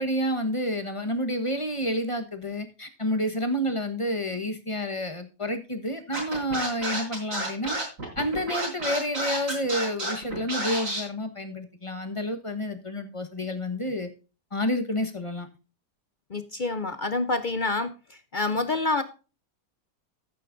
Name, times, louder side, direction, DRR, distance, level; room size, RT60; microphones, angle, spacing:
voice 1, 0.0-7.8 8.2-14.1 14.5-15.5, equal, 20° left, 6 dB, 1.1 m, -29 dB
Scratching (performance technique), 6.1-11.0, right 1 dB, 45° right, 4.6 m, -30 dB
voice 2, 16.3-19.0, left 3 dB, 65° left, 10 dB, 0.4 m, -27 dB
14.0 x 8.5 x 2.6 m, 0.33 s
omnidirectional pair, 1.9 m